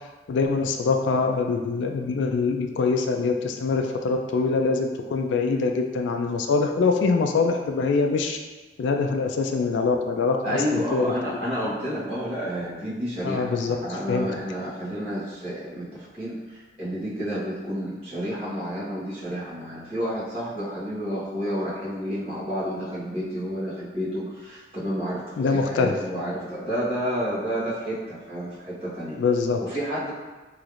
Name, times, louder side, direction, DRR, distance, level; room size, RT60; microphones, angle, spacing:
voice 1, 0.3-8.4 8.8-11.1 13.2-13.8 14.1-14.3 25.4-25.9 29.2-29.6, left 4 dB, 85° left, 3 dB, 0.3 m, -24 dB
voice 2, 10.4-16.4 16.8-29.2 29.6-30.1, equal, 30° right, -11 dB, 1.2 m, -30 dB
3.1 x 3.1 x 2.5 m, 1.2 s
head